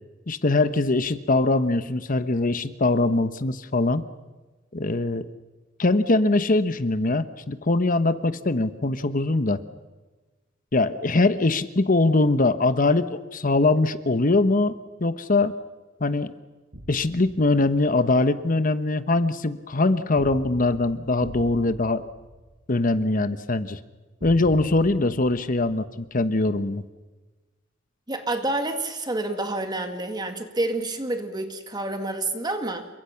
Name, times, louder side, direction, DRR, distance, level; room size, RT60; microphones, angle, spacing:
voice 1, 0.3-4.0 4.7-5.2 5.8-9.6 10.7-14.7 15.0-15.6 16.0-16.3 16.9-22.1 22.7-23.8 24.2-26.8, left 2 dB, 45° left, 12 dB, 1.1 m, -22 dB
sound 1, 16.7-18.1 20.2-23.1 24.2-26.4, equal, 75° right, 4.7 m, -43 dB
voice 2, 28.1-32.9, right 2 dB, 20° right, 6 dB, 2.0 m, -28 dB
29.0 x 24.5 x 5.9 m, 1.2 s
head